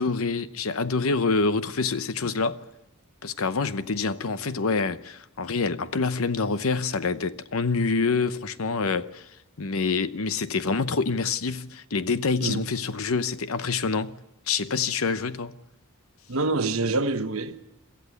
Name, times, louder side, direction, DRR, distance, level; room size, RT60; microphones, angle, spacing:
voice 1, 0.0-2.6 3.2-9.2 9.6-14.1 14.5-15.5, left 4 dB, 75° left, 0.8 m, -26 dB
voice 2, 16.3-17.6, right 3 dB, 75° right, 1.1 m, -26 dB
23.5 x 14.5 x 8.4 m
head